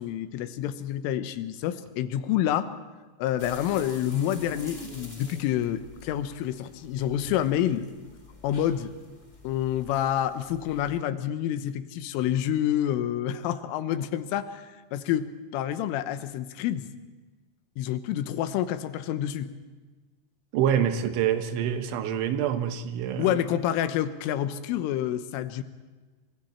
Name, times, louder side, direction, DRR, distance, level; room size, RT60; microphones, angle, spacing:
voice 1, 0.0-2.7 3.2-7.9 8.4-8.9 9.4-16.9 17.8-19.5 23.2-25.6, left 11 dB, 90° left, 11 dB, 3.6 m, -28 dB
sound 1, 3.4-11.0, left 2 dB, 15° left, 1.3 m, -47 dB
voice 2, 20.5-23.4, right 9 dB, 80° right, 8 dB, 3.6 m, -26 dB
28.5 x 25.0 x 4.4 m, 1.3 s
omnidirectional pair, 5.6 m